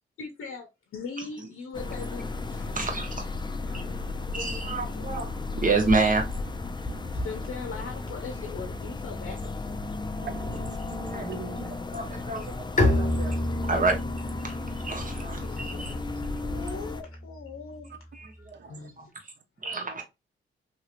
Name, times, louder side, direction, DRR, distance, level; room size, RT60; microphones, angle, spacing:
voice 1, 0.2-0.6 0.9-2.7 3.6-4.2 4.8-4.9 7.1-9.8 15.2-16.0 16.3-18.1 18.4-19.1, left 5 dB, 80° left, 0.6 m, -41 dB
sound 1, 1.7-17.0, left 3 dB, 20° left, 0.5 m, -34 dB
voice 2, 2.7-3.2 3.7-3.8 4.3-6.2 11.0-11.3 11.9-13.4 13.7-13.9 14.4-15.9 18.1-18.6 19.0-19.3 19.6-20.0, right 3 dB, 40° right, 1.2 m, -29 dB
voice 3, 3.7-4.2 6.9-7.2 10.2-11.7 18.7-18.9, right 6 dB, 55° right, 0.7 m, -42 dB
Bowed string instrument, 12.8-18.4, left 1 dB, 40° left, 1.1 m, -30 dB
3.0 x 2.9 x 2.5 m
cardioid pair, 70°, 21 cm